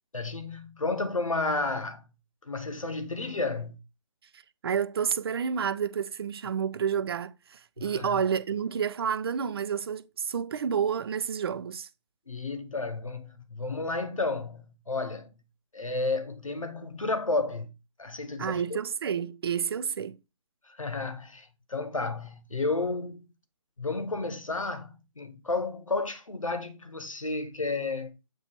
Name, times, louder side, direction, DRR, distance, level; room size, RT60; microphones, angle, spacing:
voice 1, 0.1-2.0 2.4-3.8 7.8-8.2 12.3-15.3 15.7-17.7 18.0-18.6 20.6-23.2 23.8-28.2, left 3 dB, 90° left, 1.2 m, -32 dB
voice 2, 4.3-11.9 18.4-20.2, right 7 dB, 50° right, 0.6 m, -30 dB
7.9 x 3.0 x 4.5 m
figure-of-eight pair, 140°, 17 cm